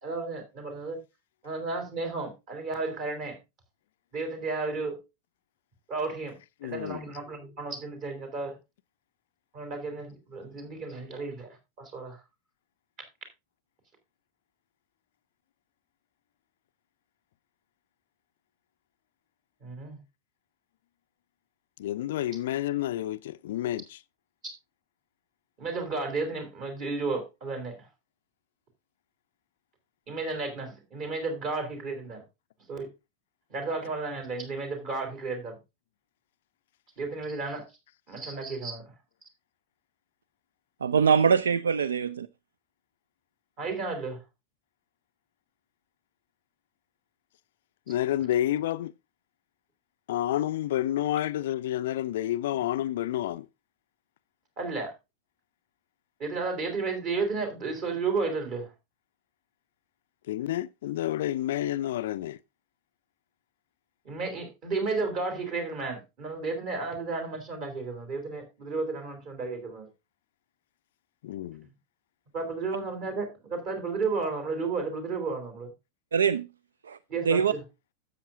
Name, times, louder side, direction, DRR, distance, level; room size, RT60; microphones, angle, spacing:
voice 1, 0.0-1.0 1.4-3.4 4.1-5.0 5.9-6.4 6.6-8.6 9.5-12.2 13.0-13.1 19.6-20.0 24.4-24.5 25.6-27.9 30.1-32.2 32.7-32.9 33.5-35.6 37.0-37.7 38.1-38.9 43.6-44.2 54.6-54.9 56.2-58.7 64.0-69.9 71.6-71.7 72.3-75.7 77.1-77.6, right 3 dB, 40° right, 3.5 m, -33 dB
voice 2, 6.6-7.0 21.8-24.0 47.9-48.9 50.1-53.5 60.3-62.4 71.2-71.7, left 13 dB, 55° left, 0.4 m, -29 dB
voice 3, 40.8-42.3 76.1-76.5 76.9-77.0 77.3-77.5, right 6 dB, 70° right, 0.4 m, -23 dB
12.5 x 7.9 x 2.6 m
figure-of-eight pair, 90°, 0 cm